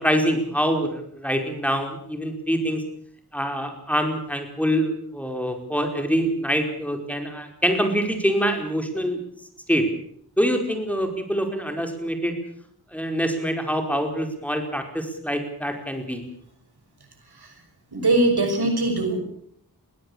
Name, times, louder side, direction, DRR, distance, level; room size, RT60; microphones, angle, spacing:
voice 1, 0.0-2.8 3.3-9.2 9.7-9.9 10.4-12.4 12.9-16.2, equal, 5° left, 4 dB, 4.9 m, -25 dB
voice 2, 17.9-19.2, right 2 dB, 90° right, 5 dB, 6.1 m, -21 dB
22.0 x 17.0 x 8.7 m, 0.65 s
wide cardioid pair, 65°, 37 cm